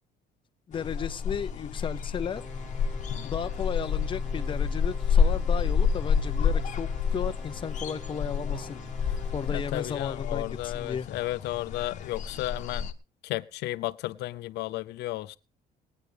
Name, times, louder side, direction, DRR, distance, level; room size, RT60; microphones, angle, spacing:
sound 1, 0.7-12.9, left 6 dB, 45° left, 1.2 m, -29 dB
voice 1, 0.7-2.4 3.2-11.1, left 7 dB, 30° left, 0.7 m, -35 dB
sound 2, 2.4-9.9, equal, ahead, 3.6 m, -46 dB
voice 2, 9.5-12.9 13.2-15.4, left 17 dB, 80° left, 0.6 m, -33 dB
21.0 x 9.3 x 3.4 m
cardioid pair, 110°, 17 cm